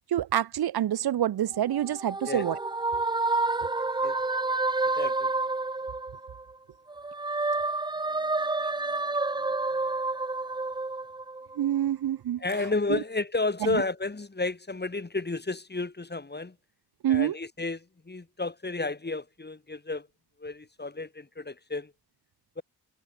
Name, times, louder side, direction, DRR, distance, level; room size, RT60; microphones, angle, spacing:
voice 1, 0.0-2.6 11.6-12.4 12.9-13.0 13.6-13.8 17.0-17.4, right 11 dB, 75° right, 0.5 m, -27 dB
sound 1, 1.5-6.5 6.9-11.7, right 3 dB, 15° right, 0.4 m, -29 dB
voice 2, 4.9-5.3 9.4-9.5 12.4-16.5 17.1-20.1 20.4-21.9 22.6-22.7, left 3 dB, 25° left, 1.3 m, -32 dB
wide cardioid pair, 55°, 38 cm